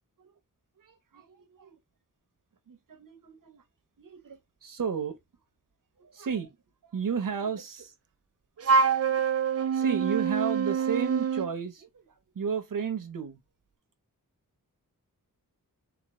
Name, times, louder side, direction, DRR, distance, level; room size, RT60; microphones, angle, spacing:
voice 1, 0.8-1.8 2.7-3.6 4.0-5.2 6.0-6.6 6.8-7.9 8.6-9.2 9.5-13.4, right 6 dB, 65° right, 1.0 m, -34 dB
Wind instrument woodwind instrument, 8.6-11.5, right 6 dB, 45° right, 0.5 m, -25 dB
4.4 x 2.7 x 3.8 m
wide cardioid pair, 70°, 35 cm